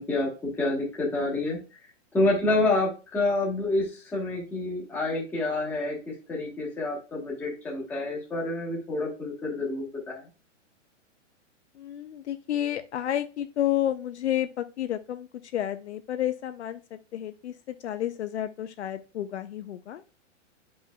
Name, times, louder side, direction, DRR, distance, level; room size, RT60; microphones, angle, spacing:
voice 1, 0.0-1.6 2.1-10.2, left 2 dB, 5° left, -4 dB, 1.2 m, -28 dB
voice 2, 11.8-20.0, left 11 dB, 60° left, 10 dB, 0.6 m, -31 dB
9.5 x 5.3 x 2.3 m, 0.33 s
hypercardioid pair, 170°, 38 cm